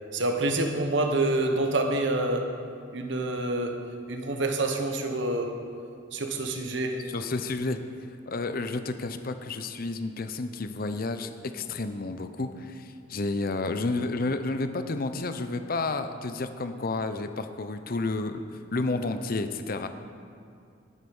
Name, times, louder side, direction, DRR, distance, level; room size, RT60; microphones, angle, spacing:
voice 1, 0.1-2.5 2.9-3.8 4.1-5.6 6.1-7.0, right 2 dB, 70° right, 4 dB, 1.3 m, -27 dB
voice 2, 7.1-7.8 8.3-18.4 18.7-19.9, left 3 dB, 50° left, 9 dB, 0.7 m, -31 dB
18.0 x 7.8 x 5.5 m, 2.4 s
head